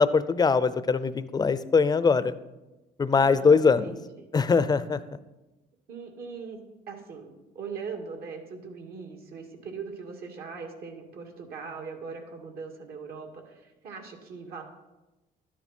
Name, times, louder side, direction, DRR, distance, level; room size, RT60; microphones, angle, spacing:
voice 1, 0.0-2.3 3.0-3.9 4.3-5.2, left 5 dB, 25° left, 15 dB, 0.6 m, -22 dB
voice 2, 3.1-4.3 5.9-6.6 6.9-14.6, right 5 dB, 65° right, 3 dB, 2.3 m, -40 dB
12.5 x 10.0 x 4.4 m, 1.0 s
cardioid pair, 110°, 17 cm